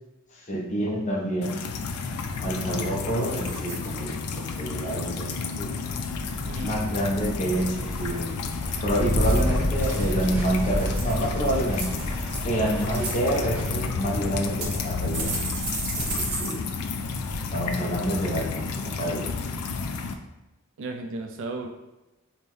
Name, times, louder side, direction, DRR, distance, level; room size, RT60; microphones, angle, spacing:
voice 1, 0.5-1.6 2.4-5.7 6.6-8.3 8.8-12.0 12.4-15.3 16.0-16.7 17.5-19.3, right 1 dB, 35° left, -3 dB, 0.6 m, -28 dB
sound 1, 1.4-20.1, left 4 dB, 85° left, 0.4 m, -32 dB
sound 2, 2.4-2.8 3.2-3.8 4.2-4.6 9.1-10.1 10.6-11.2 11.7-12.4 12.8-13.1 13.9-14.0 14.6-16.5 16.8-16.9 17.3-17.4, right 3 dB, 90° right, 1.0 m, -34 dB
sound 3, 6.1-16.4, equal, 5° right, 0.7 m, -31 dB
voice 2, 6.4-6.8 20.8-21.7, right 2 dB, 60° right, 4 dB, 0.3 m, -34 dB
5.3 x 2.1 x 3.0 m, 1.0 s
head